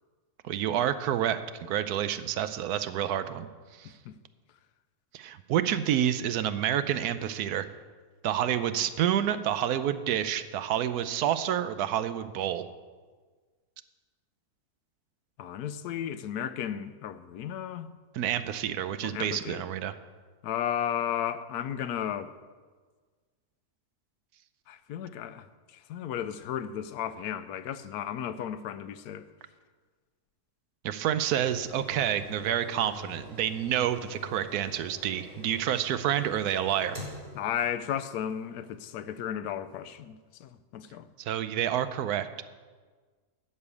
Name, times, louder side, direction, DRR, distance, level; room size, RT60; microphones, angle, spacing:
voice 1, 0.4-3.5 3.8-3.9 5.1-7.7 8.2-12.7 18.1-19.9 30.8-37.0 41.2-42.4, right 10 dB, 85° right, 1.1 m, -28 dB
voice 2, 15.4-17.9 19.0-19.6 20.4-22.3 24.7-29.3 37.3-41.1, left 9 dB, 90° left, 1.1 m, -34 dB
sound 1, 31.4-38.4 38.9-39.0, left 1 dB, 30° right, 3.6 m, -46 dB
12.5 x 5.5 x 8.3 m
omnidirectional pair, 1.6 m